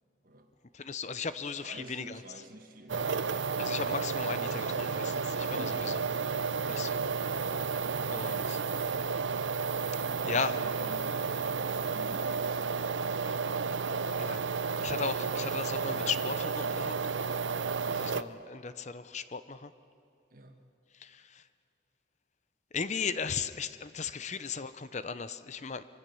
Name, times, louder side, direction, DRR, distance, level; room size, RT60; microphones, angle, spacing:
voice 1, 0.7-2.2 3.6-6.0 6.7-7.0 8.1-8.6 9.9-10.6 14.2-14.4 14.8-17.0 17.9-19.7 20.9-21.5 22.7-25.9, left 5 dB, 40° left, 13 dB, 0.7 m, -36 dB
voice 2, 1.6-3.1 5.5-5.9 10.0-13.0 20.3-20.6 24.2-24.3, right 1 dB, 50° right, 5 dB, 1.7 m, -49 dB
sound 1, 2.9-18.2, right 5 dB, 90° right, 0.7 m, -32 dB
25.5 x 24.0 x 7.0 m, 2.7 s
head